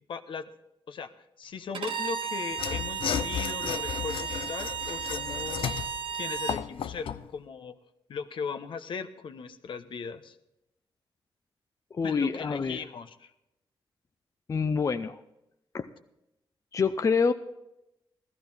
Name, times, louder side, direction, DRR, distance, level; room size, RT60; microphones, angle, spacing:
voice 1, 0.1-0.5 0.9-1.1 1.4-5.8 6.1-7.8 8.1-10.4 12.0-13.3, left 6 dB, 70° left, 9 dB, 0.9 m, -38 dB
Bowed string instrument, 1.7-6.6, right 7 dB, 75° right, 1.2 m, -34 dB
Mechanisms / Sawing, 2.5-7.3, left 9 dB, 85° left, 0.5 m, -34 dB
voice 2, 11.9-12.8 14.5-15.2 15.7-15.9 16.7-17.3, left 5 dB, 35° left, 9 dB, 0.5 m, -26 dB
15.0 x 14.0 x 4.2 m, 0.86 s
wide cardioid pair, 130°, 9 cm